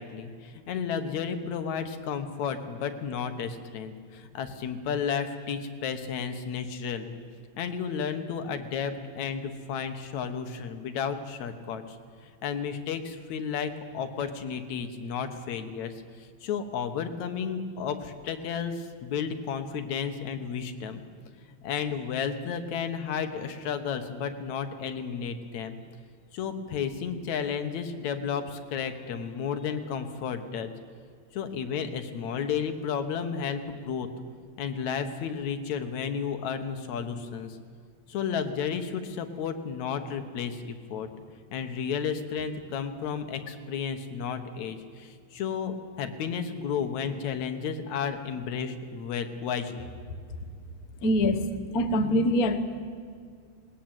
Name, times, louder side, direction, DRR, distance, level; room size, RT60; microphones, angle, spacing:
voice 1, 0.0-7.2 7.6-12.0 12.4-15.9 16.2-21.0 21.6-25.8 26.3-30.7 31.3-34.1 34.6-37.6 38.1-41.1 41.5-50.2, left 7 dB, 75° left, 8 dB, 2.6 m, -32 dB
voice 2, 51.0-51.4 51.7-52.6, left 1 dB, 50° left, 7 dB, 1.1 m, -23 dB
20.5 x 18.5 x 9.0 m, 2.1 s
omnidirectional pair, 3.3 m